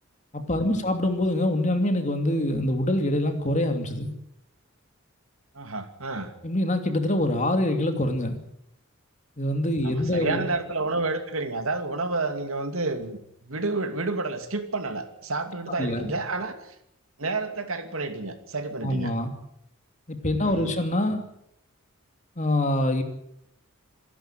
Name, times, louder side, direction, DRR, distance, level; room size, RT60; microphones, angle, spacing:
voice 1, 0.3-4.1 6.4-8.4 9.4-10.5 15.8-16.1 18.8-19.3 20.1-21.2 22.4-23.0, left 1 dB, 35° left, 6 dB, 2.7 m, -25 dB
voice 2, 5.5-6.3 9.8-16.7 17.2-19.1 20.4-20.7, right 3 dB, 70° right, 8 dB, 2.6 m, -30 dB
26.5 x 11.5 x 9.1 m, 0.75 s
head